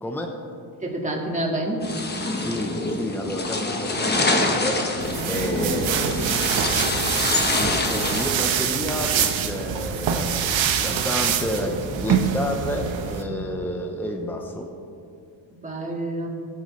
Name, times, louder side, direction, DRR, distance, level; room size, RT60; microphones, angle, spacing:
voice 1, 0.0-0.4 2.4-5.0 5.2-6.5 7.5-14.7, equal, 5° left, 2 dB, 0.9 m, -30 dB
voice 2, 0.8-1.8 5.1-5.4 13.2-13.7 15.6-16.3, right 1 dB, 15° right, -1 dB, 2.0 m, -29 dB
sound 1, 1.8-8.3, left 2 dB, 20° left, 1.1 m, -25 dB
sound 2, 5.0-13.2, right 7 dB, 70° right, 1.2 m, -25 dB
21.0 x 8.9 x 3.3 m, 2.5 s
cardioid pair, 145°, 48 cm